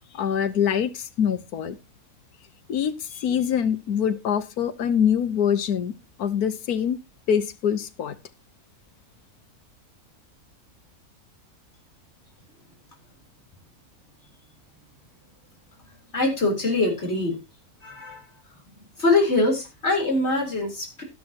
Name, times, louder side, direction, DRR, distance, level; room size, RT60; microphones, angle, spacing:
voice 1, 0.1-1.8 2.7-5.9 6.2-7.0 7.3-8.1, left 8 dB, 80° left, 13 dB, 1.5 m, -24 dB
voice 2, 16.1-17.4 17.8-18.2 19.0-21.0, left 2 dB, 45° left, 2 dB, 4.2 m, -23 dB
13.0 x 11.5 x 2.9 m, 0.25 s
omnidirectional pair, 1.6 m